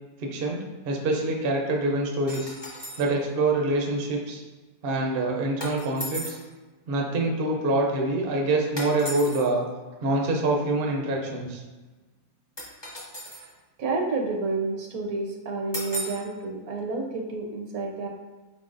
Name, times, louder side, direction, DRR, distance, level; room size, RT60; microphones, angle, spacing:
voice 1, 0.2-2.5 3.0-4.4 4.8-6.4 6.9-9.6 10.0-11.6, right 2 dB, 55° right, 0 dB, 0.6 m, -25 dB
sound 1, 2.3-3.1 5.6-6.5 8.8-9.4 12.6-13.5 15.7-16.3, equal, 25° left, 0.6 m, -36 dB
voice 2, 13.8-18.1, right 3 dB, 70° right, 1 dB, 1.0 m, -30 dB
4.2 x 3.8 x 2.5 m, 1.2 s
omnidirectional pair, 1.7 m